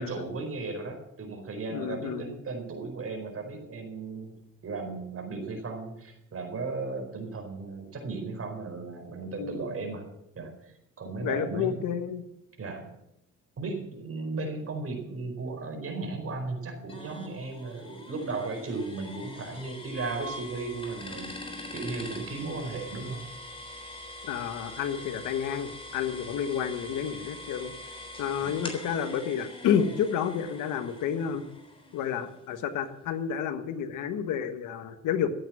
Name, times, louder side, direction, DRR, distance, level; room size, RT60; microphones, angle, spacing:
voice 1, 0.0-4.4 4.6-10.1 10.3-11.8 12.6-12.9 13.6-21.3 21.7-23.2 28.4-28.6, right 3 dB, 50° right, 4 dB, 4.6 m, -36 dB
voice 2, 1.7-2.2 9.4-9.6 11.2-12.2 24.2-27.7 28.2-31.4 31.9-35.3, left 8 dB, 90° left, 9 dB, 1.4 m, -30 dB
sound 1, 16.9-32.6, left 1 dB, 20° left, 3.6 m, -43 dB
14.5 x 8.8 x 7.5 m, 0.82 s
cardioid pair, 90°, 30 cm